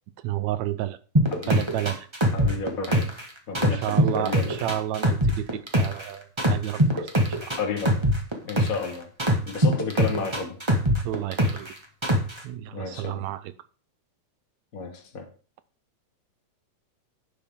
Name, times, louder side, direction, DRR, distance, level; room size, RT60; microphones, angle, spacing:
voice 1, 0.2-1.0 1.5-2.1 3.6-7.1 7.4-7.5 11.0-11.7 12.4-13.4, right 13 dB, 75° right, 1.9 m, -31 dB
sound 1, 1.1-3.2 3.5-6.0 6.4-8.9 9.2-11.7 12.0-12.4, equal, 15° right, 0.9 m, -22 dB
voice 2, 2.3-3.1 3.5-4.6 7.6-8.0 8.4-9.1 9.4-10.6 12.7-13.3 14.7-15.3, left 4 dB, 45° left, 1.2 m, -32 dB
11.5 x 8.5 x 3.7 m
omnidirectional pair, 3.4 m